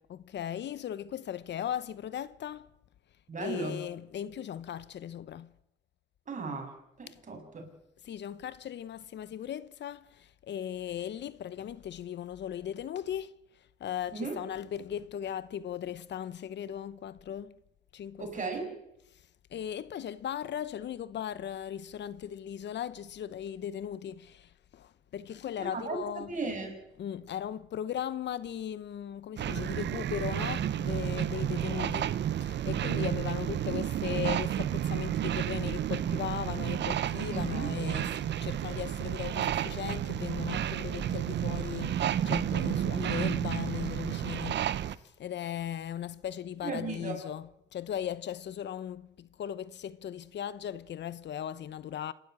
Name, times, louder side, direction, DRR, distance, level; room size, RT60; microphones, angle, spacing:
voice 1, 0.1-2.7 3.4-5.5 7.1-7.2 8.0-13.3 13.8-17.6 17.9-18.7 19.1-26.4 27.0-44.7 44.9-52.1, left 10 dB, 60° left, 0.9 m, -38 dB
voice 2, 3.3-3.8 6.3-7.7 14.1-14.4 18.2-18.7 25.6-26.0 26.3-26.8 37.3-37.7 46.6-47.1, right 3 dB, 40° right, 7.0 m, -36 dB
sound 1, 29.4-44.9, right 10 dB, 60° right, 0.9 m, -31 dB
26.5 x 13.0 x 8.8 m
cardioid pair, 90°, 20 cm